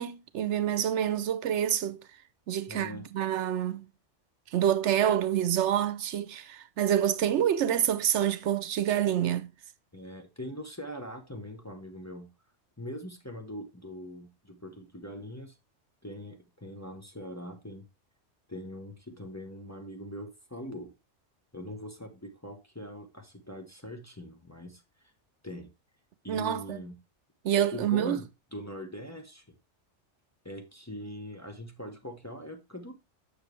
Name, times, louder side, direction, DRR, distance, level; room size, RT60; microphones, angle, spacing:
voice 1, 0.0-2.0 2.5-3.9 4.5-9.5 26.3-26.8 27.4-28.2, right 10 dB, 80° right, 1.0 m, -27 dB
voice 2, 2.7-3.1 9.9-12.3 12.8-15.6 16.0-17.8 18.5-20.9 21.5-25.1 25.4-25.7 26.2-27.0 27.7-28.2 28.5-29.5 30.4-32.9, equal, 15° left, 0.9 m, -42 dB
7.1 x 6.7 x 3.2 m
omnidirectional pair, 1.2 m